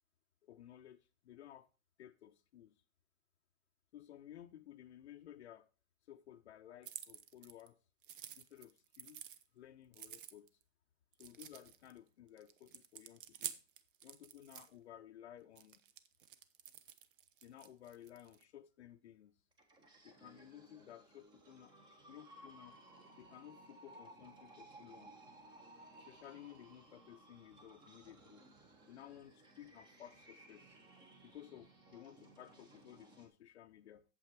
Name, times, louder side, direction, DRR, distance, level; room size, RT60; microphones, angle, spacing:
voice 1, 0.4-1.7 2.0-2.8 3.9-5.7 6.1-7.8 8.4-10.5 11.2-13.6 14.0-15.8 17.4-19.3 20.0-22.8 23.2-25.2 26.1-28.5 28.9-30.8 31.2-34.0, left 11 dB, 65° left, 0.8 m, -56 dB
sound 1, 6.8-7.7 8.0-9.4 9.9-10.6 11.1-12.0 12.4-14.7 15.6-18.4, right 10 dB, 45° right, 0.8 m, -50 dB
sound 2, 19.5-33.3, right 2 dB, 10° right, 1.2 m, -60 dB
8.4 x 7.8 x 4.6 m
hypercardioid pair, 160°, 37 cm